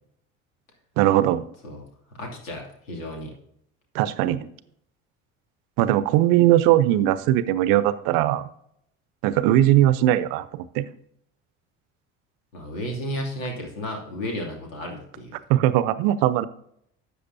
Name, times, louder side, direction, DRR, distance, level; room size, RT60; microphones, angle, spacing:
voice 1, 1.0-1.4 3.9-4.5 5.8-8.5 9.2-10.9 15.5-16.5, right 13 dB, 60° right, 15 dB, 0.7 m, -20 dB
voice 2, 1.6-3.3 12.5-15.4, equal, 75° left, 1 dB, 2.7 m, -33 dB
12.5 x 8.1 x 2.7 m, 0.71 s
hypercardioid pair, 60°, 40 cm